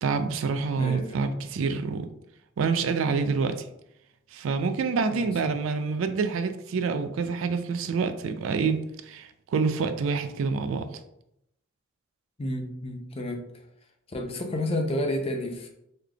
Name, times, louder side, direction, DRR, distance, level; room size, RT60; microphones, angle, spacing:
voice 1, 0.0-2.1 2.6-3.6 4.3-10.9, right 5 dB, 75° right, 9 dB, 0.3 m, -27 dB
voice 2, 0.8-1.4 5.1-5.3 12.4-13.4 14.1-15.7, left 1 dB, 30° left, 2 dB, 0.5 m, -30 dB
3.8 x 3.2 x 2.2 m, 0.80 s
head